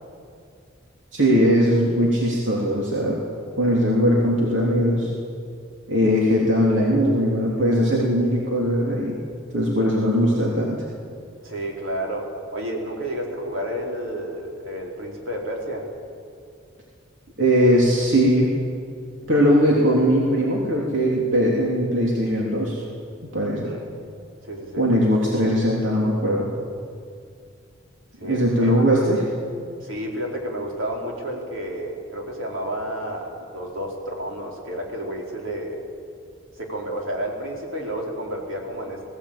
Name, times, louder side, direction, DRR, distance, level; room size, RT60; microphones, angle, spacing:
voice 1, 1.1-3.2 3.6-5.1 5.9-9.2 9.5-10.8 17.4-18.5 19.3-22.8 23.2-23.7 24.8-26.5 28.2-29.2, equal, 65° right, -3 dB, 3.3 m, -20 dB
voice 2, 11.4-15.9 23.6-23.9 24.4-24.9 28.2-28.8 29.8-35.8 36.6-39.1, right 1 dB, 85° right, -1 dB, 4.3 m, -31 dB
20.5 x 16.0 x 8.8 m, 2.3 s
head